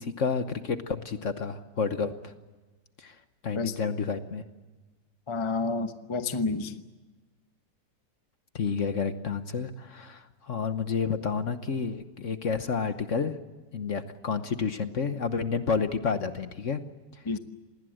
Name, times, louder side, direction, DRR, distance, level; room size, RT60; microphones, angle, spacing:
voice 1, 0.0-2.3 3.0-3.2 3.4-4.4 8.5-13.3 13.7-16.8, left 5 dB, 50° left, 10 dB, 1.3 m, -30 dB
voice 2, 5.3-6.8 17.2-17.4, left 3 dB, 20° left, 9 dB, 0.9 m, -29 dB
26.5 x 20.0 x 7.8 m, 1.3 s
omnidirectional pair, 1.9 m